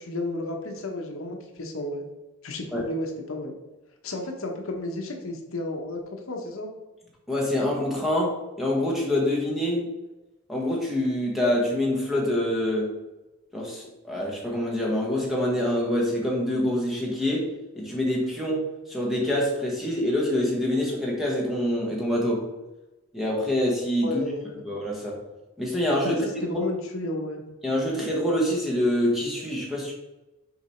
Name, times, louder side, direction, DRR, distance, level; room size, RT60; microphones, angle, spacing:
voice 1, 0.0-2.0 2.4-3.5 4.0-6.7 24.0-24.6 26.0-27.4, left 1 dB, 65° left, 2 dB, 1.0 m, -32 dB
voice 2, 7.3-9.8 10.5-12.9 13.5-17.5 17.8-18.6 18.9-22.4 23.1-24.2 24.7-25.2 25.6-26.2 27.6-29.9, left 1 dB, ahead, -3 dB, 1.4 m, -25 dB
6.8 x 3.9 x 4.4 m, 1.0 s
head